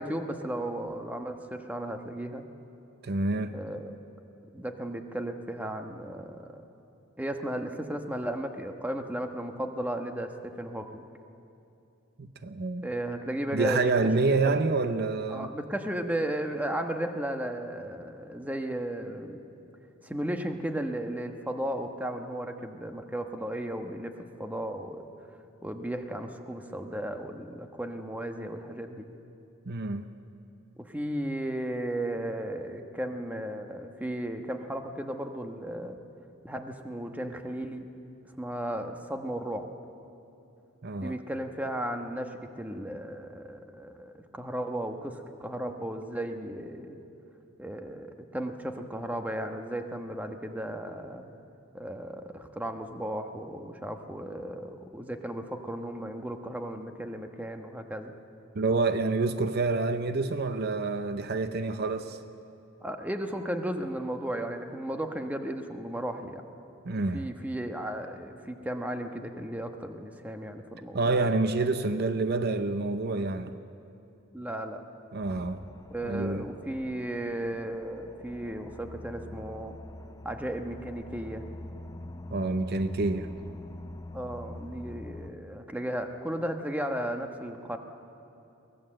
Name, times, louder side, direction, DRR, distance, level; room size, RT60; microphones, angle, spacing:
voice 1, 0.0-2.4 3.5-4.0 4.5-6.6 7.2-11.0 12.8-13.9 14.3-14.6 15.3-19.4 20.0-25.1 25.6-29.1 30.8-36.0 36.4-37.9 38.4-39.7 41.0-47.0 47.6-51.3 51.7-58.1 62.8-66.4 66.9-71.3 74.3-74.8 75.9-79.8 80.2-81.5 84.1-87.8, right 1 dB, 10° right, 5 dB, 1.1 m, -35 dB
voice 2, 3.0-3.6 12.2-12.9 13.5-15.5 29.7-30.0 40.8-41.2 58.5-62.2 66.8-67.3 70.9-73.6 75.1-75.6 76.0-76.5 82.3-83.3, right 3 dB, 50° right, 10 dB, 0.7 m, -28 dB
sound 1, 75.2-85.3, left 1 dB, 20° left, 0.6 m, -44 dB
23.5 x 18.0 x 7.7 m, 2.8 s
head